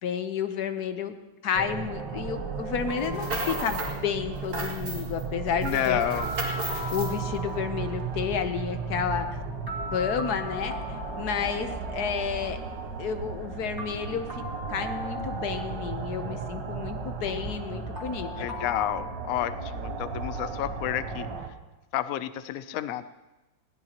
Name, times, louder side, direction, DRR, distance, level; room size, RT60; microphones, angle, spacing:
voice 1, 0.0-1.1 1.4-6.0 6.9-9.3 9.9-10.7 11.2-12.6 13.0-14.4 14.7-18.3, left 7 dB, 60° left, 9 dB, 1.3 m, -31 dB
sound 1, 1.5-21.5, right 4 dB, 65° right, 1.9 m, -35 dB
sound 2, 2.9-4.0 5.6-8.0 9.7-12.0 13.8-16.1 17.9-19.0, left 1 dB, 10° right, 2.5 m, -39 dB
sound 3, 3.0-4.0 4.3-5.2 5.6-7.2, right 2 dB, 40° right, 2.5 m, -34 dB
voice 2, 5.6-6.3 18.4-21.3 21.9-23.0, left 12 dB, 85° left, 13 dB, 0.7 m, -30 dB
21.0 x 17.0 x 2.9 m, 1.1 s
omnidirectional pair, 2.1 m